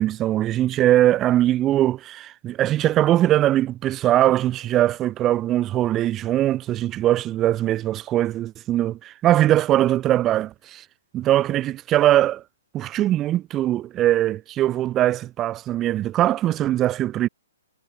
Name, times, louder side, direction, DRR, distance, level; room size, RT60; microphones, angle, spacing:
voice 1, 0.0-10.8 11.1-12.4 12.7-17.3, right 13 dB, 20° right, 1.0 m, -21 dB
hypercardioid pair, 140°, 0 cm